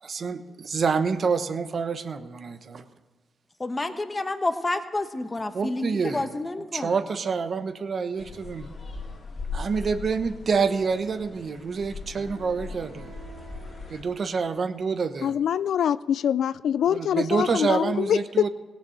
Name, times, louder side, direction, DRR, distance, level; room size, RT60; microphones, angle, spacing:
voice 1, 0.0-2.8 5.5-6.3 6.7-8.7 9.5-13.1 13.9-15.4 16.9-18.5, right 5 dB, 55° right, 9 dB, 1.0 m, -27 dB
voice 2, 3.6-7.0, left 2 dB, 30° left, 8 dB, 1.2 m, -29 dB
sound 1, 8.2-14.0, left 4 dB, 60° left, 2.3 m, -39 dB
sound 2, 12.2-15.4, right 4 dB, 85° right, 1.9 m, -50 dB
voice 3, 15.2-18.5, left 9 dB, 80° left, 18 dB, 0.3 m, -24 dB
17.5 x 6.8 x 7.7 m, 1.4 s
supercardioid pair, 60°, 0 cm